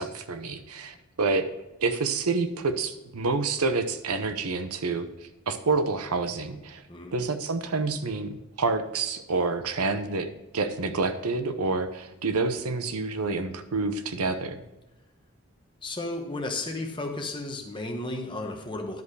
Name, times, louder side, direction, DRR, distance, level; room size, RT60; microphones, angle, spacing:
voice 1, 0.0-1.5 1.8-5.1 5.5-6.8 7.1-14.6, right 3 dB, 85° right, 9 dB, 0.8 m, -28 dB
voice 2, 15.8-19.0, left 2 dB, 20° left, 3 dB, 1.1 m, -33 dB
10.5 x 5.2 x 4.7 m, 1.0 s
head